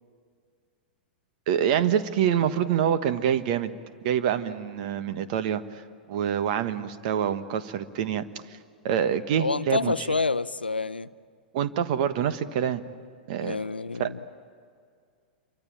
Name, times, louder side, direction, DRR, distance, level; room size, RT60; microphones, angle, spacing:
voice 1, 1.5-3.7 4.0-5.8 6.1-8.6 8.8-9.9 11.5-12.8 13.3-13.6 14.0-14.1, right 9 dB, 50° right, 1.4 m, -26 dB
voice 2, 9.4-11.1 13.4-14.2, left 4 dB, 90° left, 0.7 m, -28 dB
27.5 x 24.5 x 8.9 m
figure-of-eight pair, 100°, 5 cm